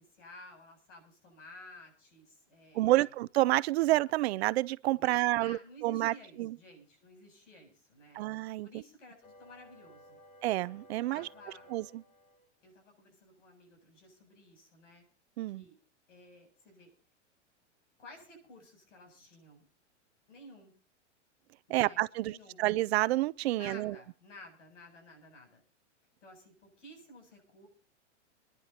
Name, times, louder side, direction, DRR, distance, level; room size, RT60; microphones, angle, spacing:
voice 1, 0.0-3.1 4.9-8.2 8.6-10.2 11.1-11.7 12.6-15.1 15.5-15.8 16.1-16.9 18.0-19.7 20.3-20.7 21.7-22.7 23.5-25.6 26.2-27.7, left 1 dB, 80° left, 7.7 m, -54 dB
voice 2, 2.7-6.6 8.1-8.7 10.4-11.3 11.7-12.0 15.4-15.6 21.7-23.9, right 17 dB, 60° right, 0.6 m, -29 dB
sound 1, 9.2-12.5, equal, 35° left, 2.2 m, -57 dB
28.5 x 11.0 x 2.9 m
hypercardioid pair, 130°, 36 cm